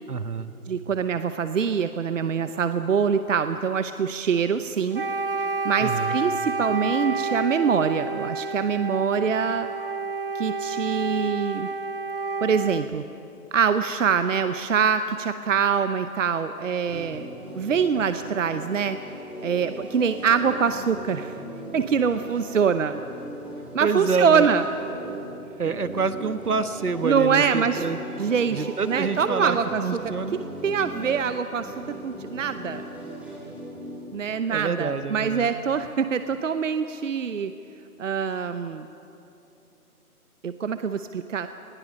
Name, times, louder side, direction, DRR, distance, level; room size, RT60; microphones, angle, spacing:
voice 1, 0.1-0.5 5.8-6.2 23.8-24.5 25.6-28.0 28.5-30.4 34.2-35.6, right 5 dB, 75° right, 10 dB, 1.5 m, -27 dB
voice 2, 0.7-5.0 5.4-9.7 10.3-11.7 12.4-13.0 13.5-17.3 17.5-19.0 19.4-21.4 21.7-23.0 23.7-24.6 27.0-27.8 28.2-30.0 30.6-32.8 34.1-37.5 38.0-38.9 40.4-41.5, right 6 dB, 55° right, 10 dB, 0.9 m, -24 dB
Wind instrument woodwind instrument, 4.9-13.0, right 4 dB, 40° right, 0.5 m, -30 dB
sound 1, 16.9-34.3, right 1 dB, 5° right, 3.7 m, -38 dB
30.0 x 20.0 x 5.4 m, 2.8 s
figure-of-eight pair, 150°, 45 cm